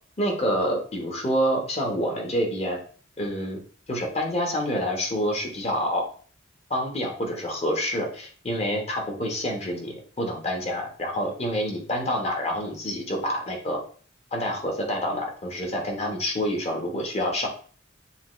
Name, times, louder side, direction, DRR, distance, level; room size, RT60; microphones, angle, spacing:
voice 1, 0.2-2.8 3.2-3.6 3.9-6.1 6.7-13.8 14.3-17.5, equal, 35° left, 1 dB, 1.1 m, -27 dB
6.8 x 2.4 x 3.1 m, 0.43 s
head